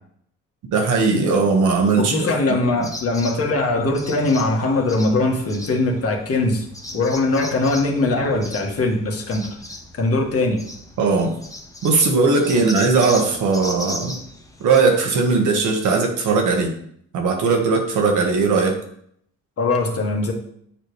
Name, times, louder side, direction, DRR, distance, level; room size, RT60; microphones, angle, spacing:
voice 1, 0.7-2.3 11.0-11.3 11.8-14.2 14.6-16.7 17.1-18.8, right 4 dB, 80° right, 2 dB, 1.4 m, -18 dB
voice 2, 2.0-6.7 6.9-9.6 10.0-10.6 19.6-20.3, left 2 dB, 50° left, 1 dB, 1.6 m, -21 dB
sound 1, 2.6-14.8, left 1 dB, 10° left, 0.9 m, -37 dB
7.6 x 5.0 x 3.2 m, 0.66 s
cardioid pair, 90°, 30 cm